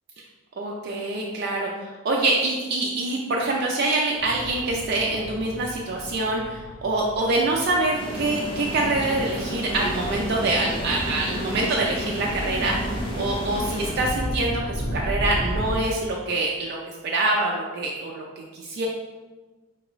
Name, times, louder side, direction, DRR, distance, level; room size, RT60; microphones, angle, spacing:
voice 1, 0.6-16.8 17.0-18.9, right 2 dB, 50° right, -2 dB, 0.4 m, -25 dB
sound 1, 4.1-15.7, equal, 85° left, 0.9 m, -34 dB
sound 2, 7.9-14.5, equal, 25° left, 0.6 m, -32 dB
4.5 x 2.5 x 3.0 m, 1.3 s
head